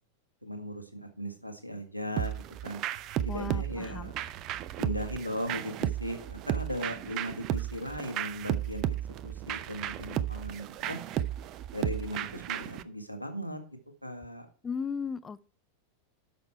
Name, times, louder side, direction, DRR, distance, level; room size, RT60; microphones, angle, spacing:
voice 1, 0.4-2.8 3.2-4.1 4.8-8.9 9.2-11.0 11.7-13.6 14.0-14.5, equal, 90° right, 1.8 m, -37 dB
sound 1, 2.2-12.8, right 11 dB, 35° right, 0.7 m, -34 dB
voice 2, 3.3-4.1 14.6-15.5, left 6 dB, 15° left, 0.5 m, -36 dB
11.5 x 6.6 x 4.5 m
figure-of-eight pair, 90°, 0 cm